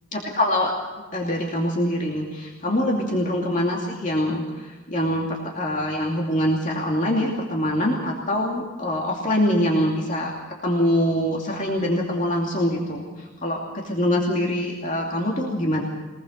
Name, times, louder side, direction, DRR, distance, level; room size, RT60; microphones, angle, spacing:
voice 1, 0.1-0.7 1.1-10.3 10.6-15.8, left 1 dB, 35° left, -1 dB, 2.6 m, -24 dB
23.5 x 19.5 x 6.7 m, 1.3 s
head